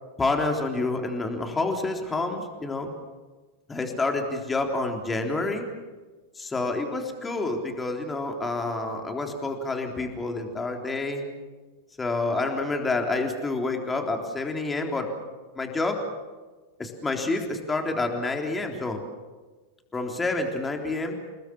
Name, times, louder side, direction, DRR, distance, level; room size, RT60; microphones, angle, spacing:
voice 1, 0.2-2.9 3.7-5.7 6.4-11.3 12.0-15.1 15.6-16.0 16.8-19.0 19.9-21.2, left 3 dB, 15° left, 3 dB, 3.7 m, -28 dB
29.5 x 19.5 x 7.3 m, 1.3 s
figure-of-eight pair, 90°, 0 cm